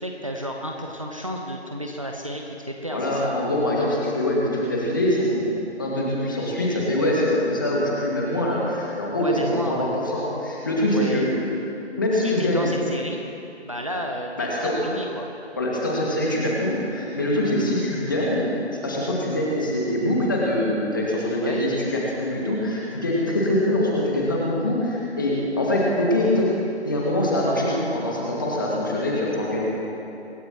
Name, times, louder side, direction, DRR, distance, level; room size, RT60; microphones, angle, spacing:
voice 1, 0.0-3.3 9.2-9.9 10.9-11.3 12.2-13.2 13.6-15.3 21.4-21.6, equal, 30° right, 1 dB, 0.9 m, -32 dB
voice 2, 2.9-5.5 5.8-11.3 12.0-12.7 14.4-14.7 15.6-18.5 18.8-26.5 26.8-29.6, left 1 dB, 20° left, -4 dB, 2.0 m, -23 dB
25.0 x 13.5 x 3.0 m, 2.9 s
figure-of-eight pair, 165°, 34 cm